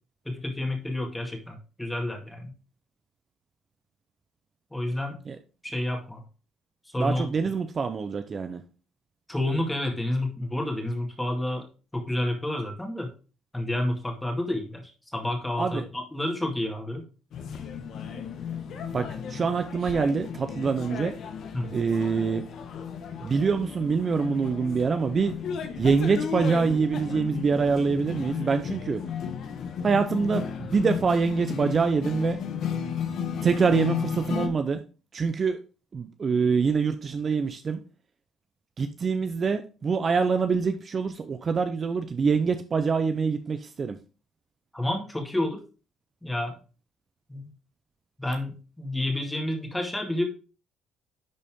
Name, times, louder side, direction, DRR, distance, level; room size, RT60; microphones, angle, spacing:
voice 1, 0.3-2.5 4.7-5.2 5.6-6.2 6.9-7.3 9.3-13.1 13.5-17.1 21.5-21.7 44.7-45.6 46.2-46.6 47.3-47.5 48.2-50.2, left 1 dB, 10° left, 2 dB, 2.1 m, -30 dB
voice 2, 7.0-8.6 15.5-15.9 18.9-21.1 21.7-22.4 23.2-25.3 25.8-29.0 29.8-32.4 33.4-34.8 35.1-35.6 35.9-37.8 38.8-44.0, right 5 dB, 40° right, 8 dB, 0.7 m, -25 dB
sound 1, 17.3-34.5, left 7 dB, 60° left, 1.3 m, -34 dB
10.5 x 4.1 x 3.7 m, 0.35 s
cardioid pair, 105°, 0 cm